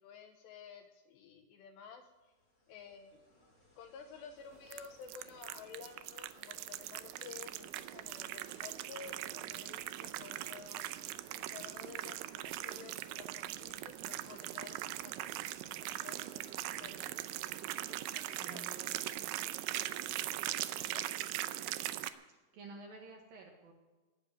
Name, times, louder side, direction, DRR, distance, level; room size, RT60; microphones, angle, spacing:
voice 1, 0.0-2.3 2.7-3.2 3.8-10.9 11.4-15.3 15.8-17.0 17.8-18.8 20.8-21.1, left 7 dB, 75° left, 6 dB, 2.7 m, -53 dB
sound 1, 2.0-17.7, left 1 dB, 20° left, 2.3 m, -65 dB
sound 2, 4.7-22.1, right 14 dB, 80° right, 2.9 m, -41 dB
voice 2, 18.3-19.3 22.5-23.7, right 3 dB, 60° right, 1 dB, 2.8 m, -52 dB
19.0 x 7.2 x 9.3 m, 1.2 s
omnidirectional pair, 5.6 m